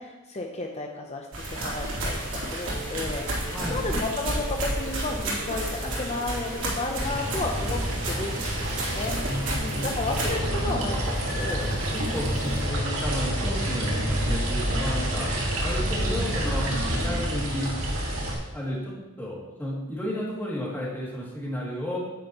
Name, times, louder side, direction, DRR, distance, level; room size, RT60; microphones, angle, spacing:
voice 1, 0.0-2.2 2.5-11.7, left 2 dB, 30° left, 2 dB, 0.7 m, -33 dB
sound 1, 1.3-10.3, right 1 dB, 70° right, 2.9 m, -31 dB
sound 2, 2.6-12.6, equal, 40° right, 2.1 m, -45 dB
voice 2, 3.5-3.8 9.2-10.0 11.9-15.3 15.6-16.7 17.0-17.7 18.5-18.9 19.2-22.0, left 1 dB, 10° left, -6 dB, 2.5 m, -32 dB
sound 3, 7.0-18.3, equal, 90° right, 2.0 m, -28 dB
9.4 x 8.6 x 3.0 m, 1.1 s
head